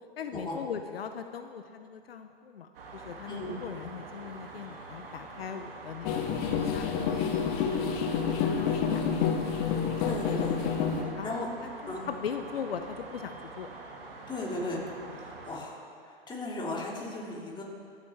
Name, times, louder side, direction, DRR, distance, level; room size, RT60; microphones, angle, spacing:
voice 1, 0.2-7.5 8.1-9.3 11.2-11.4 11.8-13.7, left 7 dB, 75° left, 8 dB, 0.7 m, -40 dB
sound 1, 2.7-15.6, right 3 dB, 70° right, 2.2 m, -45 dB
sound 2, 6.0-11.0, left 7 dB, 45° left, 1.2 m, -28 dB
voice 2, 7.5-7.9 10.0-10.6 11.0-11.5 11.9-12.1 14.3-17.6, left 2 dB, 15° left, -2 dB, 2.6 m, -37 dB
23.5 x 8.3 x 3.3 m, 2.3 s
figure-of-eight pair, 100°, 30 cm